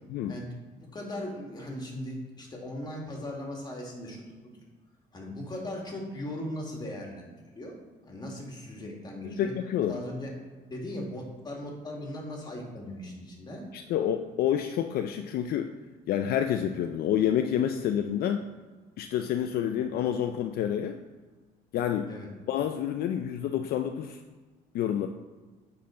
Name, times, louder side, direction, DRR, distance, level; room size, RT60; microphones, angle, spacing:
voice 1, 0.9-4.5 5.1-7.8 8.0-9.5 9.8-10.3 10.7-13.7 22.1-22.3, left 1 dB, 25° left, -1 dB, 1.9 m, -38 dB
voice 2, 9.2-10.0 13.7-15.7 16.1-18.5 19.0-21.0 21.7-22.1 22.5-24.2 24.7-25.1, left 10 dB, 65° left, 6 dB, 0.4 m, -28 dB
9.3 x 4.1 x 3.8 m, 1.4 s
cardioid pair, 110°, 17 cm